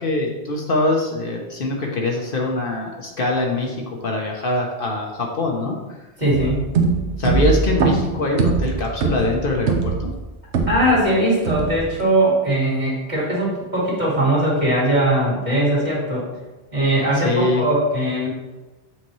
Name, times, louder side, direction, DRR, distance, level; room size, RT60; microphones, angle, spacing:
voice 1, 0.0-5.8 7.2-10.1 17.2-17.6, left 2 dB, 55° left, -1 dB, 1.0 m, -23 dB
voice 2, 6.2-6.7 10.7-16.3 16.7-18.3, right 1 dB, 40° right, -5 dB, 2.1 m, -20 dB
sound 1, 6.3-11.1 11.5-12.0, right 5 dB, 75° right, 1.0 m, -22 dB
7.6 x 4.2 x 3.1 m, 1.1 s
omnidirectional pair, 1.1 m